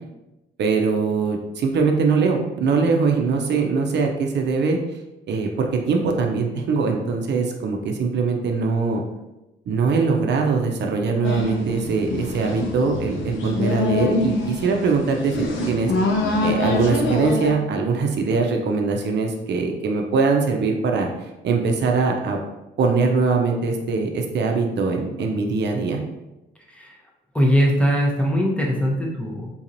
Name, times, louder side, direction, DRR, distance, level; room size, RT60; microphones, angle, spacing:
voice 1, 0.6-4.8 5.3-9.0 9.7-15.9 16.4-21.1 21.4-22.4 22.8-26.0, right 4 dB, 60° right, 2 dB, 0.5 m, -22 dB
sound 1, 11.2-17.5, left 2 dB, 75° left, 0.6 m, -25 dB
voice 2, 27.3-29.5, equal, 5° left, -2 dB, 0.7 m, -21 dB
3.8 x 2.9 x 2.6 m, 0.99 s
cardioid pair, 90°, 20 cm